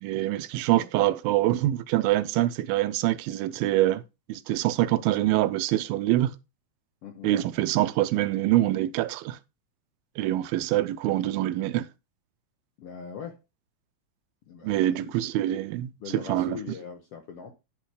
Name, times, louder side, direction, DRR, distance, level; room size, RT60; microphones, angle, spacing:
voice 1, 0.0-4.0 4.3-6.3 7.2-9.4 10.2-11.9 14.6-16.6, right 14 dB, 85° right, 2.4 m, -25 dB
voice 2, 12.8-13.4 14.4-15.3 16.0-17.5, left 7 dB, 80° left, 1.3 m, -41 dB
11.0 x 4.5 x 4.8 m
omnidirectional pair, 4.2 m